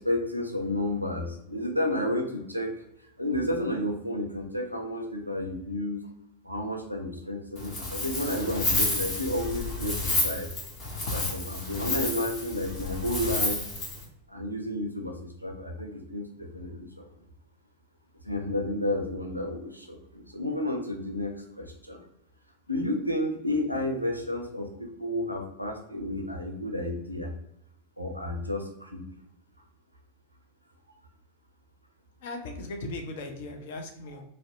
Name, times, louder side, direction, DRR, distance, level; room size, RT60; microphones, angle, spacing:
voice 1, 0.0-2.8 3.2-6.1 6.4-10.5 11.1-13.6 14.3-17.1 18.2-22.0 22.7-27.3 28.0-29.0, left 1 dB, 90° right, 2 dB, 0.4 m, -31 dB
Wind, 7.6-14.0, left 2 dB, 30° left, 0.8 m, -30 dB
voice 2, 32.2-34.2, left 2 dB, 55° left, 4 dB, 0.4 m, -38 dB
2.6 x 2.0 x 2.4 m, 0.79 s
figure-of-eight pair, 90°, 0 cm